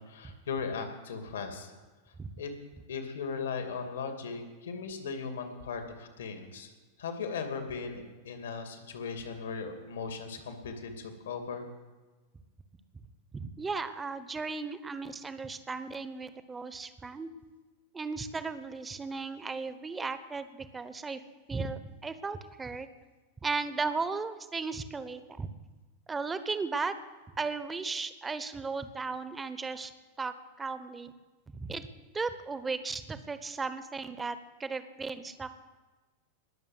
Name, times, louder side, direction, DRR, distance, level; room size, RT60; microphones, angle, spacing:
voice 1, 0.0-1.7 2.4-2.5 2.9-6.7 7.0-11.7, left 5 dB, 70° left, 5 dB, 2.6 m, -38 dB
voice 2, 13.3-17.3 17.9-21.2 21.5-22.9 23.4-25.5 26.1-26.9 27.4-29.9 30.2-31.1 31.5-31.9 32.1-35.5, right 4 dB, 15° right, 12 dB, 1.1 m, -36 dB
20.0 x 7.2 x 7.9 m, 1.3 s
figure-of-eight pair, 90°, 0 cm